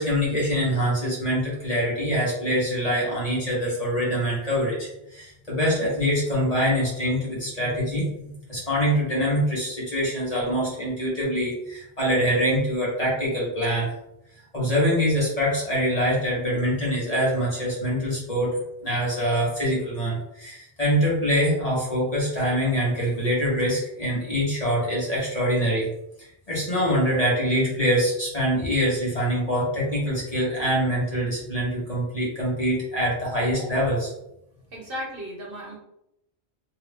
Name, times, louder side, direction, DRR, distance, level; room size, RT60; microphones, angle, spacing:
voice 1, 0.0-13.9 14.5-18.5 18.8-25.9 26.2-34.1, equal, 35° left, -6 dB, 1.2 m, -24 dB
voice 2, 34.7-35.8, equal, 55° right, -2 dB, 1.0 m, -35 dB
2.8 x 2.7 x 3.4 m, 0.83 s
omnidirectional pair, 1.1 m